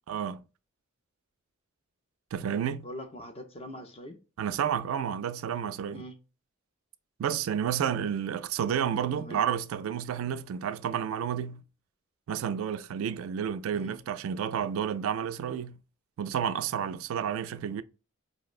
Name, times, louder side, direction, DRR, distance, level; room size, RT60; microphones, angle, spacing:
voice 1, 0.1-0.4 2.3-2.9 4.4-6.0 7.2-11.6 12.3-15.8 16.2-17.8, right 8 dB, 80° right, 0.3 m, -31 dB
voice 2, 2.8-4.2 5.9-6.2 9.2-9.4 13.7-14.0, equal, 30° left, 0.5 m, -42 dB
5.1 x 2.0 x 2.4 m
head